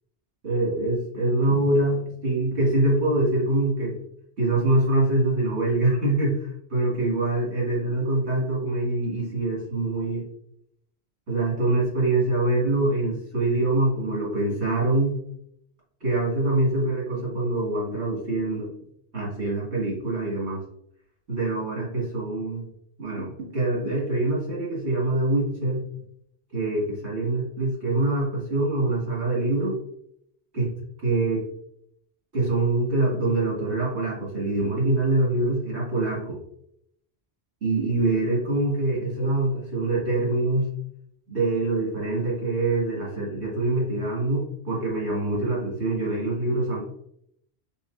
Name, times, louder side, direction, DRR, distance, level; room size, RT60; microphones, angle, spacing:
voice 1, 0.4-4.0 4.4-10.2 11.3-15.2 16.0-18.7 19.1-20.6 21.3-22.7 23.0-25.8 26.5-29.8 30.5-30.7 31.0-31.5 32.3-36.4 37.6-40.7 41.3-46.8, right 2 dB, 75° right, -6 dB, 2.2 m, -24 dB
4.6 x 3.5 x 2.6 m, 0.73 s
omnidirectional pair, 1.1 m